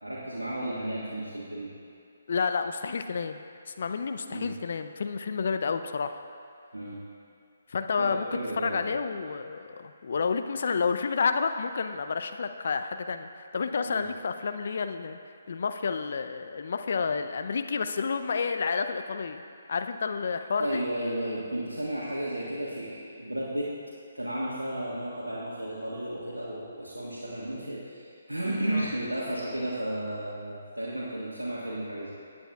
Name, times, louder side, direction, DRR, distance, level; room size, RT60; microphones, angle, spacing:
voice 1, 0.0-1.7 4.3-4.5 6.7-7.0 8.0-8.9 13.9-14.0 20.6-23.7 24.1-32.1, right 1 dB, 90° right, -7 dB, 1.6 m, -33 dB
voice 2, 2.3-6.1 7.7-8.3 8.6-15.2 15.5-19.4 19.7-20.8 28.7-28.9, left 5 dB, 55° left, 8 dB, 0.5 m, -30 dB
16.5 x 8.8 x 2.4 m, 2.4 s
figure-of-eight pair, 140°, 0 cm